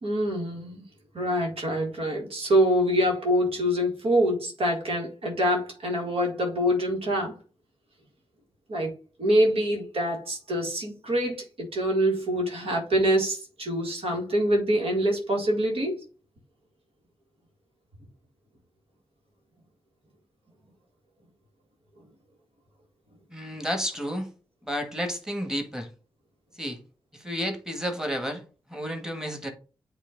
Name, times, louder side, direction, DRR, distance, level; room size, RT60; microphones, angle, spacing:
voice 1, 0.0-0.8 1.1-7.3 8.7-8.9 9.2-16.0, equal, 75° right, 1.8 m, -25 dB
voice 2, 23.3-24.3 24.6-25.9 26.5-26.8 27.1-28.4 28.7-29.5, equal, 5° right, 1.6 m, -31 dB
8.4 x 2.9 x 3.9 m
cardioid pair, 45°, 10 cm